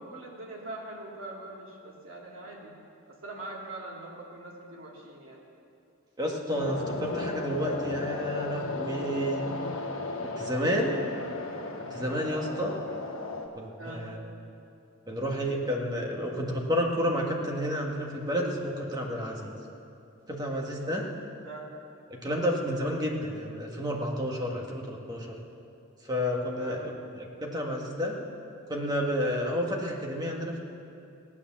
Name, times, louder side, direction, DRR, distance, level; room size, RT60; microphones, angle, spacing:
voice 1, 0.0-2.7 3.1-5.4 10.6-11.0 13.8-14.1 21.4-21.7 26.6-26.8, right 2 dB, 65° right, -3 dB, 2.7 m, -42 dB
voice 2, 6.2-9.5 10.2-11.0 11.9-12.7 13.6-14.2 15.1-19.6 20.3-21.0 22.1-25.4 26.0-26.8 27.4-28.2 28.7-30.6, equal, 20° right, -1 dB, 1.8 m, -30 dB
sound 1, 6.5-13.5, left 2 dB, 65° left, 1.5 m, -35 dB
17.0 x 9.8 x 7.4 m, 2.6 s
head